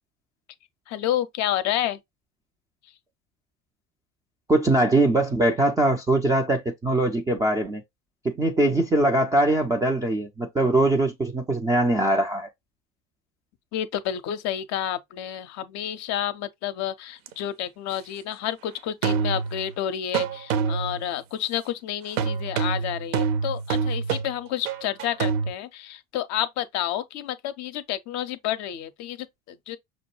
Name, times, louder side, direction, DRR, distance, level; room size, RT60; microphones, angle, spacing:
voice 1, 0.9-2.0 13.7-29.8, left 11 dB, 40° left, 0.5 m, -30 dB
voice 2, 4.5-7.8 8.2-12.5, right 1 dB, 10° right, 0.3 m, -22 dB
sound 1, 17.3-17.4 19.0-19.7 20.1-21.1 22.2-25.5, right 6 dB, 60° right, 0.7 m, -26 dB
5.9 x 2.2 x 3.0 m
figure-of-eight pair, 65°, 43 cm